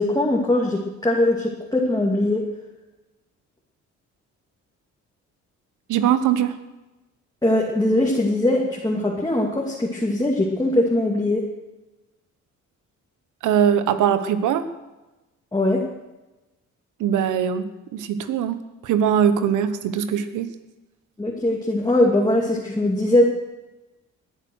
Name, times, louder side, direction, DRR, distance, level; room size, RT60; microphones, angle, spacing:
voice 1, 0.0-2.4 7.4-11.4 15.5-15.8 21.2-23.3, left 1 dB, 15° left, -3 dB, 2.7 m, -21 dB
voice 2, 5.9-6.5 13.4-14.6 17.0-20.5, right 8 dB, 85° right, 11 dB, 1.3 m, -21 dB
19.5 x 9.9 x 6.4 m, 1.1 s
cardioid pair, 90°, 30 cm